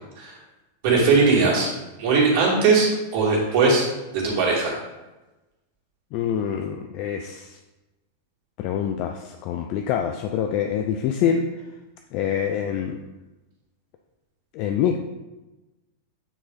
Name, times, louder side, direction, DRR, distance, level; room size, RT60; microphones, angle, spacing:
voice 1, 0.8-1.7 2.0-3.8 4.1-4.8, right 4 dB, 50° right, -4 dB, 2.7 m, -19 dB
voice 2, 6.1-7.6 8.6-11.7 12.1-13.0 14.5-15.0, left 8 dB, 45° left, 4 dB, 0.5 m, -25 dB
8.8 x 4.7 x 4.0 m, 1.1 s
figure-of-eight pair, 90°, 0 cm